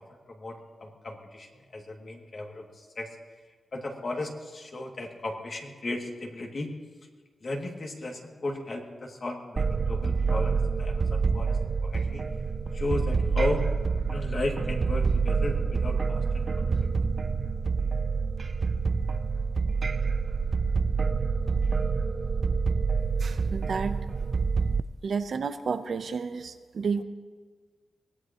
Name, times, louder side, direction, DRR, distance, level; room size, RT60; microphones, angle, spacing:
voice 1, 0.0-3.2 3.4-6.7 7.4-12.2 12.7-13.6 14.1-16.7, left 2 dB, 50° left, 0 dB, 2.4 m, -35 dB
sound 1, 9.6-24.8, right 5 dB, 45° right, 0.4 m, -27 dB
voice 2, 23.2-24.0 25.0-27.0, right 5 dB, 65° right, 9 dB, 0.8 m, -31 dB
23.0 x 18.5 x 3.1 m, 1.5 s
wide cardioid pair, 110°, 0 cm